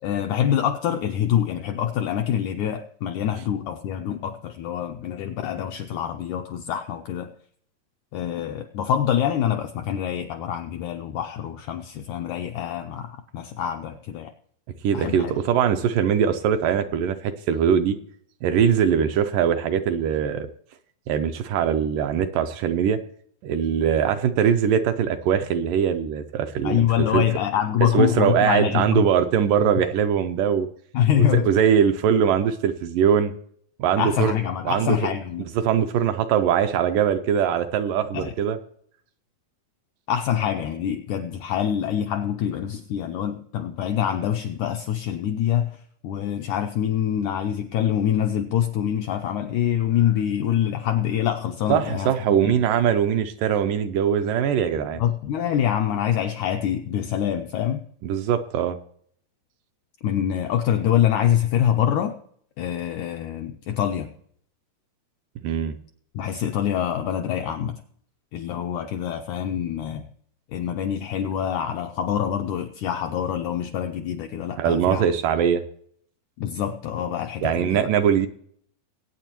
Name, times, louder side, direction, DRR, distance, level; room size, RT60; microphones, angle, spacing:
voice 1, 0.0-7.3 8.1-14.3 14.9-15.3 26.6-29.0 30.9-31.5 34.0-35.4 38.1-38.3 40.1-45.8 46.0-52.6 55.0-57.9 60.0-62.2 62.6-64.1 66.1-67.8 68.3-70.1 70.5-75.1 76.4-77.9, left 10 dB, 90° left, 5 dB, 1.7 m, -25 dB
voice 2, 14.8-18.0 18.4-20.5 21.1-23.0 23.4-26.9 27.1-27.2 27.9-30.7 31.2-33.3 33.8-34.3 34.7-35.0 35.6-38.6 51.7-55.0 58.0-58.8 65.4-65.8 74.6-75.6 77.4-78.3, right 8 dB, 80° right, 8 dB, 2.1 m, -21 dB
22.0 x 8.9 x 3.0 m, 0.63 s
omnidirectional pair, 4.2 m